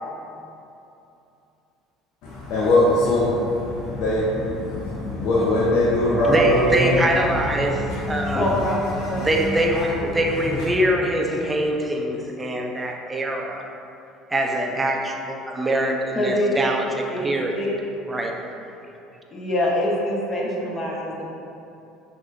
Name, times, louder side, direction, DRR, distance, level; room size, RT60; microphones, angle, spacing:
voice 1, 2.2-7.0 7.6-8.4 8.9-9.6 10.3-10.4, left 1 dB, 65° left, -6 dB, 0.6 m, -22 dB
voice 2, 6.3-8.4 9.2-13.6 14.3-17.6 18.1-18.3 18.8-18.9, right 1 dB, 15° right, 1 dB, 0.5 m, -24 dB
voice 3, 8.3-10.2 11.3-11.5 16.1-16.8 17.1-17.3 17.5-17.7 19.3-21.2, left 1 dB, 35° left, -3 dB, 1.0 m, -25 dB
5.9 x 2.6 x 2.6 m, 2.8 s
hypercardioid pair, 75°, 0 cm